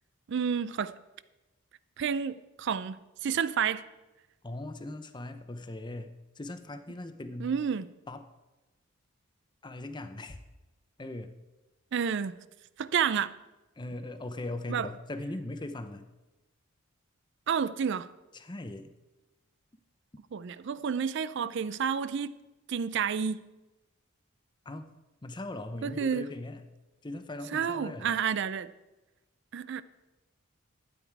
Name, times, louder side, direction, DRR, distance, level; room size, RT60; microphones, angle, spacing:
voice 1, 0.3-0.9 2.0-3.9 7.4-7.9 11.9-12.4 12.8-13.3 14.7-14.9 17.5-18.1 20.3-22.3 22.7-23.4 25.8-26.3 27.5-28.7 29.5-29.8, right 7 dB, 55° right, 0.4 m, -30 dB
voice 2, 4.4-7.5 8.1-8.2 9.6-10.4 11.0-11.3 13.8-16.1 18.3-18.9 24.7-24.9 25.2-26.7 27.0-28.2, left 2 dB, 20° left, 0.7 m, -39 dB
12.5 x 9.2 x 4.7 m
head